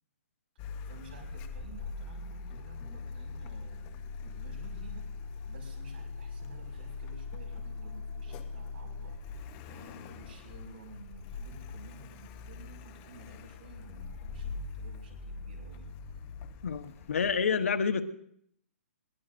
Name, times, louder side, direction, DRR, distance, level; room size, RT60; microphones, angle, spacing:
Car, 0.6-17.5, left 4 dB, 25° left, 0.8 m, -42 dB
voice 1, 0.9-5.1 5.5-15.9, right 2 dB, 55° right, 5.5 m, -52 dB
voice 2, 16.6-18.0, left 6 dB, 75° left, 1.1 m, -28 dB
21.5 x 17.5 x 2.6 m
hypercardioid pair, 160°, 7 cm